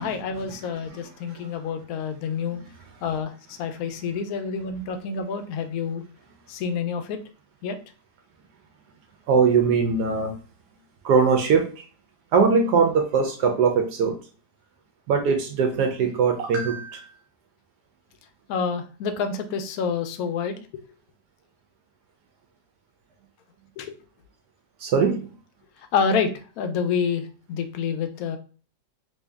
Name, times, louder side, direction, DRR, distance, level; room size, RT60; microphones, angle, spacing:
voice 1, 0.0-2.6 3.0-6.0 6.5-7.2 7.6-7.8 18.5-20.5 23.8-23.9 25.9-28.4, left 6 dB, 70° left, 7 dB, 0.9 m, -28 dB
voice 2, 9.3-10.3 11.0-11.7 12.3-14.2 15.1-17.1 24.8-25.3, right 5 dB, 75° right, 4 dB, 1.1 m, -21 dB
3.1 x 2.6 x 3.4 m, 0.38 s
omnidirectional pair, 1.9 m